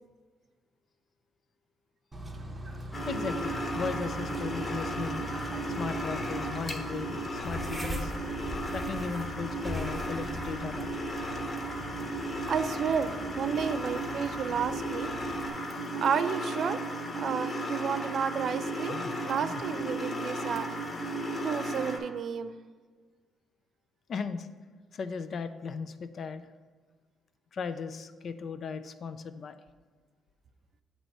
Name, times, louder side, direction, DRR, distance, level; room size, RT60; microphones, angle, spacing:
Bird / Train, 2.1-15.5, equal, 20° right, 0.7 m, -44 dB
sound 1, 2.9-22.0, right 1 dB, 30° left, 1.1 m, -35 dB
voice 1, 3.1-5.3 5.8-8.1 8.7-10.9 18.9-19.1 19.4-19.6 24.1-24.5 24.9-26.4 27.5-29.6, left 5 dB, 55° left, 11 dB, 0.4 m, -37 dB
sound 2, 7.4-14.3, equal, 5° left, 1.1 m, -41 dB
voice 2, 12.5-15.1 16.0-16.8 17.2-19.0 19.2-20.7 21.4-22.5, right 7 dB, 60° right, 10 dB, 0.3 m, -31 dB
7.7 x 3.0 x 5.3 m, 1.5 s
cardioid pair, 90°, 0 cm